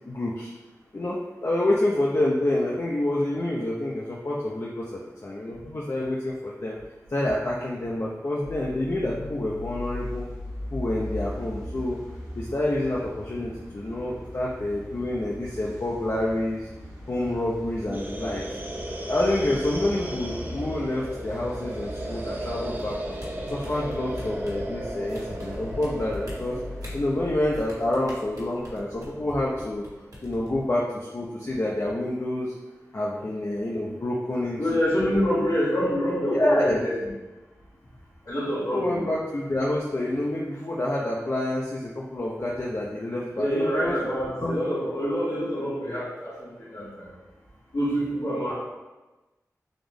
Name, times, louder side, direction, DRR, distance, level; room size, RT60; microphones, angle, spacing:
voice 1, 0.1-0.5 0.9-6.8 7.1-10.3 10.7-12.0 12.3-16.7 17.1-18.6 19.1-23.2 23.5-26.6 26.9-29.9 30.2-32.5 32.9-34.7 35.4-35.5 36.3-36.8 38.7-44.0 44.4-44.6, left 1 dB, 50° left, -4 dB, 0.6 m, -28 dB
sound 1, 8.4-27.7, left 1 dB, 90° right, 1.0 m, -39 dB
sound 2, 17.9-30.7, right 1 dB, 30° right, 0.6 m, -37 dB
sound 3, 22.8-24.6 25.1-25.9 26.1-26.9 27.7-29.3 29.6-29.9 30.1-30.5, equal, 70° right, 1.4 m, -42 dB
voice 2, 34.6-37.1 38.3-39.0 43.3-46.3 46.7-47.1 47.7-48.5, equal, 85° left, -11 dB, 1.4 m, -26 dB
3.9 x 3.0 x 3.5 m, 1.1 s
cardioid pair, 45°, 6 cm